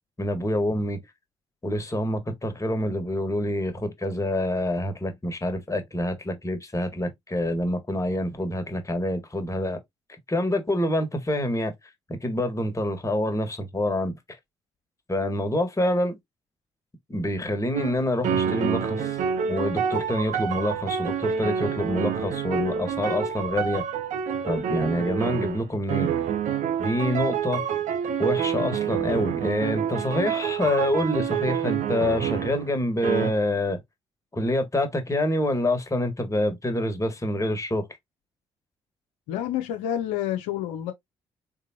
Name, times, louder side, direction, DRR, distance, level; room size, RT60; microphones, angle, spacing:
voice 1, 0.2-1.0 1.6-9.8 10.3-11.7 12.2-14.2 15.1-16.2 17.1-19.2 19.5-23.8 24.4-26.1 26.8-27.6 28.2-33.8 34.3-37.9, left 1 dB, 25° left, 1.6 m, -26 dB
sound 1, 17.7-18.0 18.2-32.7 33.0-33.3, right 8 dB, 65° right, 0.8 m, -27 dB
voice 2, 39.3-40.9, left 11 dB, 80° left, 0.7 m, -28 dB
3.7 x 3.4 x 2.8 m
hypercardioid pair, 45°, 14 cm